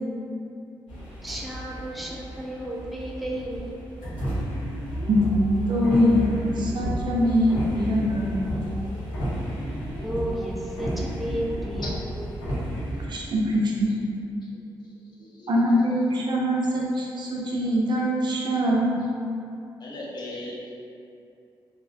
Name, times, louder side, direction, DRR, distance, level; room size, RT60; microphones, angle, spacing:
sound 1, 0.9-13.0, equal, 85° left, 1.0 m, -32 dB
voice 1, 1.2-3.8 10.0-11.9, right 1 dB, ahead, -3 dB, 0.4 m, -32 dB
voice 2, 5.1-5.4 5.7-8.4 13.1-13.9 15.5-18.9, equal, 55° right, -3 dB, 0.5 m, -23 dB
voice 3, 15.2-15.9 16.2-16.3 19.8-20.7, left 1 dB, 55° left, -5 dB, 0.6 m, -38 dB
2.6 x 2.0 x 2.5 m, 2.6 s
cardioid pair, 65°, 9 cm